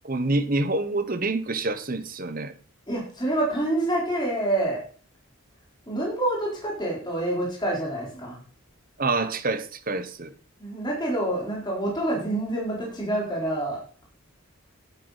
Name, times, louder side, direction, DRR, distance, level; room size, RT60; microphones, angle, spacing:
voice 1, 0.0-2.5 9.0-10.3, right 2 dB, 40° right, 1.1 m, -27 dB
voice 2, 2.9-4.8 5.9-8.4 10.6-13.8, right 1 dB, 20° left, 4.0 m, -27 dB
11.0 x 10.5 x 4.1 m
head